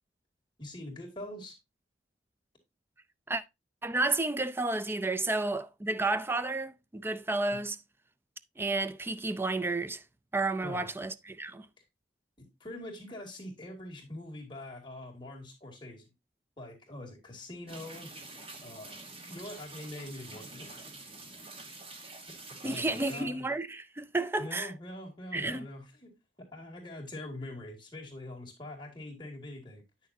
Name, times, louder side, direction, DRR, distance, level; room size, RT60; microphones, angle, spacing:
voice 1, 0.6-1.5 7.5-7.6 10.6-10.9 12.4-16.1 16.6-18.1 18.6-19.0 19.3-20.7 22.6-23.5 24.4-26.1 26.5-29.8, left 1 dB, 25° left, 2.2 m, -43 dB
voice 2, 3.8-7.8 8.6-10.0 10.3-11.7 22.6-24.7 25.3-25.7, right 2 dB, 15° right, 0.4 m, -31 dB
sound 1, 17.7-23.2, right 2 dB, 30° right, 1.3 m, -47 dB
9.0 x 6.3 x 2.7 m
head